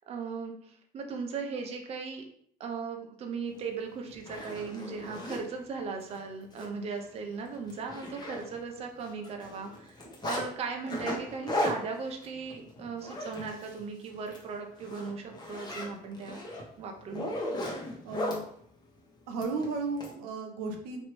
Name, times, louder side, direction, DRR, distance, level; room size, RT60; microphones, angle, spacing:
voice 1, 0.1-2.2 2.6-10.0 10.2-16.4 16.8-17.3, right 5 dB, 40° right, 3 dB, 0.5 m, -37 dB
Zipper (clothing), 3.6-3.7 4.1-5.4 6.0-6.2 6.5-6.7 7.0-7.1 7.5-8.8 9.0-10.4 10.9-13.8 14.2-14.4 14.8-18.4 19.4-20.1, left 1 dB, 25° left, 0.8 m, -36 dB
voice 2, 18.0-18.5 19.3-21.0, right 3 dB, 85° right, 2 dB, 0.6 m, -34 dB
3.0 x 2.5 x 3.0 m, 0.64 s
cardioid pair, 110°, 16 cm